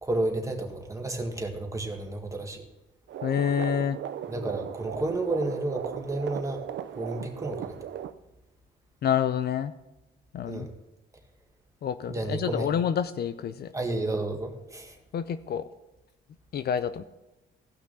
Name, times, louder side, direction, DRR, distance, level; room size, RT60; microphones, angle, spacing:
voice 1, 0.0-2.7 4.3-6.7 6.9-7.8 10.5-10.7 12.1-12.7 13.7-15.0, right 2 dB, 15° right, 3 dB, 1.7 m, -31 dB
sound 1, 3.1-8.1, right 10 dB, 65° right, 0.6 m, -37 dB
voice 2, 3.2-4.0 9.0-9.7 10.3-10.7 11.8-13.7 15.1-15.7 16.5-17.0, left 8 dB, 55° left, 12 dB, 0.5 m, -28 dB
16.0 x 6.0 x 4.1 m, 1.0 s
cardioid pair, 90°, 20 cm